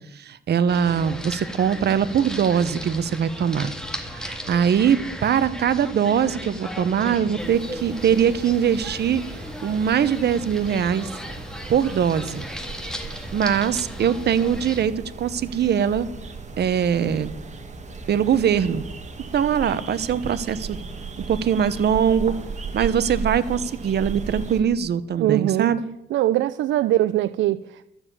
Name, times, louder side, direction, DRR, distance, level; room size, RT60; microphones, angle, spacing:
voice 1, 0.2-3.7 4.1-9.2 9.6-11.1 11.7-12.4 13.3-16.1 16.6-17.3 18.1-18.8 19.3-20.8 21.2-22.3 22.7-25.8, right 8 dB, 55° right, 0.9 m, -22 dB
sound 1, 0.7-14.8, equal, 5° left, 1.9 m, -36 dB
sound 2, 7.4-24.6, right 4 dB, 35° right, 2.0 m, -36 dB
voice 2, 25.2-25.7 26.1-27.9, right 13 dB, 75° right, 0.4 m, -22 dB
12.5 x 7.2 x 8.5 m
cardioid pair, 90°, 20 cm